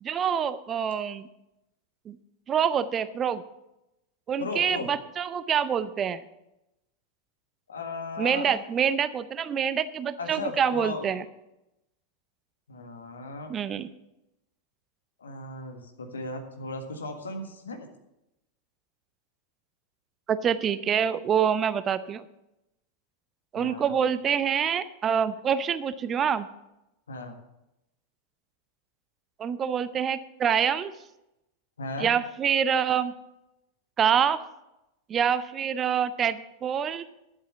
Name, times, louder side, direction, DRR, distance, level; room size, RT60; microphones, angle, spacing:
voice 1, 0.0-1.3 2.1-2.2 2.5-3.4 4.3-6.2 8.2-11.2 13.5-13.9 20.3-22.2 23.5-26.5 29.4-30.9 32.0-33.1 34.0-34.4 35.1-37.1, right 8 dB, 25° right, 14 dB, 0.6 m, -26 dB
voice 2, 4.4-4.9 7.7-8.6 10.2-11.1 12.7-13.5 15.2-17.9 23.5-23.9 27.1-27.4 31.8-32.1, left 3 dB, 70° left, 4 dB, 1.6 m, -36 dB
11.0 x 7.8 x 6.7 m, 0.90 s
figure-of-eight pair, 90°, 0 cm